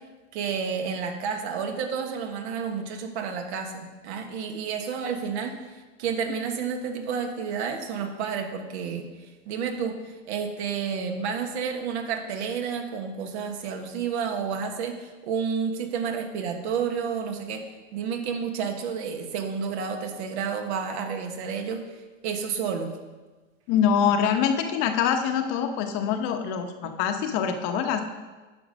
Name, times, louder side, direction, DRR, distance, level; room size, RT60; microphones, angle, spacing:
voice 1, 0.3-17.6 17.9-21.8 22.2-23.0 26.8-26.9, right 6 dB, 60° right, 5 dB, 1.4 m, -30 dB
voice 2, 23.7-28.0, left 7 dB, 45° left, 6 dB, 1.0 m, -24 dB
9.9 x 5.4 x 5.1 m, 1.2 s
hypercardioid pair, 125°, 38 cm